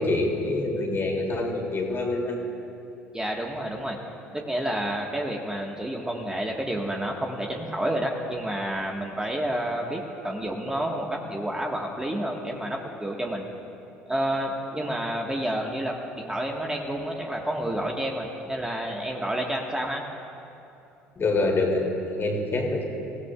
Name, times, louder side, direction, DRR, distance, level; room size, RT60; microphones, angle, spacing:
voice 1, 0.0-2.4 21.2-22.8, left 2 dB, 35° left, 0 dB, 3.0 m, -26 dB
voice 2, 3.1-4.0 4.3-13.4 14.1-20.0, right 1 dB, 10° right, 0 dB, 1.6 m, -29 dB
27.0 x 16.5 x 2.5 m, 2.8 s
figure-of-eight pair, 60°, 7 cm